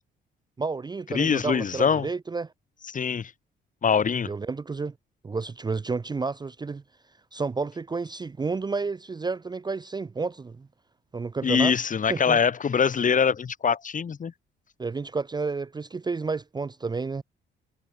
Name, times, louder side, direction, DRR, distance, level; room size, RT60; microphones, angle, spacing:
voice 1, 0.6-2.5 4.2-4.9 5.2-6.8 7.3-10.7 11.1-11.8 12.1-12.4 14.8-17.2, right 4 dB, 20° right, 0.6 m, -31 dB
voice 2, 1.1-2.1 2.9-3.3 3.8-4.3 11.4-14.3, left 6 dB, 40° left, 1.8 m, -23 dB
cardioid pair, 90°, 20 cm